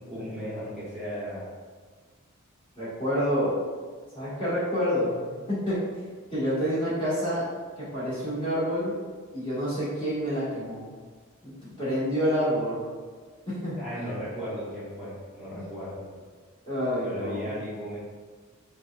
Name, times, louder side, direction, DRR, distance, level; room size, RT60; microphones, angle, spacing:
voice 1, 0.0-1.5 13.8-16.1 17.0-18.0, equal, 5° right, -13 dB, 0.7 m, -36 dB
voice 2, 2.7-3.6 4.1-5.9 6.3-9.0 9.3-10.8 11.4-12.8 13.5-13.8 15.5-15.6 16.7-17.5, equal, 25° left, -11 dB, 1.4 m, -28 dB
5.4 x 2.3 x 2.3 m, 1.5 s
head